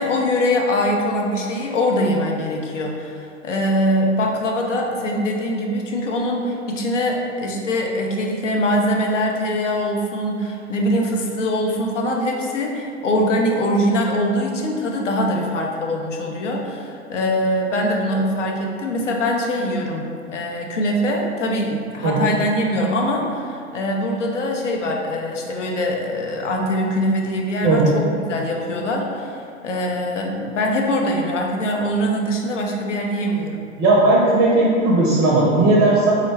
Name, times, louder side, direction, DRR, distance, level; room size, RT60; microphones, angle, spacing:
voice 1, 0.0-33.6, equal, 80° left, 0 dB, 0.6 m, -23 dB
voice 2, 33.8-36.1, right 2 dB, 30° right, -4 dB, 0.5 m, -16 dB
3.6 x 2.0 x 3.2 m, 2.4 s
figure-of-eight pair, 95°, 36 cm